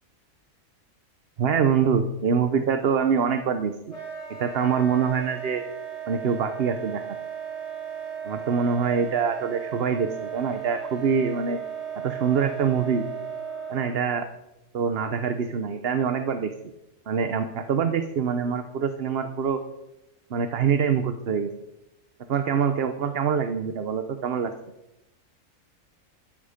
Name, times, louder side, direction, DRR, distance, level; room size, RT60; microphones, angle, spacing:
voice 1, 1.4-3.7 4.4-5.6 6.1-7.0 8.2-11.6 12.0-13.1 13.7-14.3 14.7-16.5 17.1-19.6 20.3-21.5 22.3-24.5, right 6 dB, 50° right, 8 dB, 1.0 m, -24 dB
Wind instrument woodwind instrument, 3.9-14.0, right 8 dB, 25° left, 4.7 m, -36 dB
12.5 x 11.0 x 5.1 m, 0.90 s
omnidirectional pair, 1.4 m